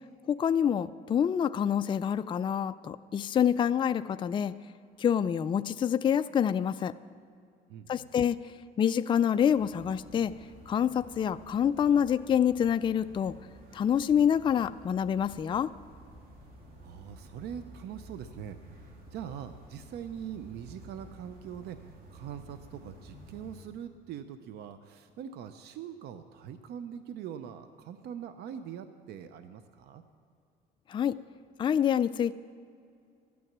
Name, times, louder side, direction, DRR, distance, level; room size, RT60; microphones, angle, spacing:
voice 1, 0.3-4.5 5.0-6.9 7.9-8.4 8.8-10.3 10.7-13.3 13.7-15.7 30.9-31.2 31.6-32.3, left 8 dB, 30° left, 11 dB, 0.4 m, -27 dB
voice 2, 7.7-8.1 16.8-18.6 19.1-30.0, right 9 dB, 75° right, 10 dB, 0.7 m, -42 dB
sound 1, 9.5-23.6, equal, 55° right, 2.8 m, -52 dB
14.0 x 9.4 x 7.3 m, 2.4 s
cardioid pair, 110°, 17 cm